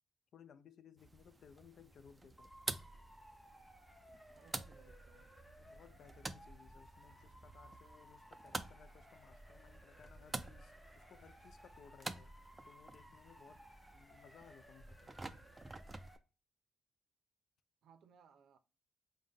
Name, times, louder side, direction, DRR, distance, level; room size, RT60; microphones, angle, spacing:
voice 1, 0.3-2.5 5.6-12.3 12.7-13.6 13.9-15.1, left 7 dB, 65° left, 0.4 m, -62 dB
sound 1, 1.0-16.2, right 2 dB, 20° right, 0.3 m, -50 dB
Motor vehicle (road) / Siren, 2.4-16.2, equal, 5° left, 0.8 m, -60 dB
voice 2, 4.3-5.3 17.8-18.6, right 7 dB, 85° right, 0.5 m, -65 dB
5.3 x 2.1 x 3.3 m
cardioid pair, 110°, 0 cm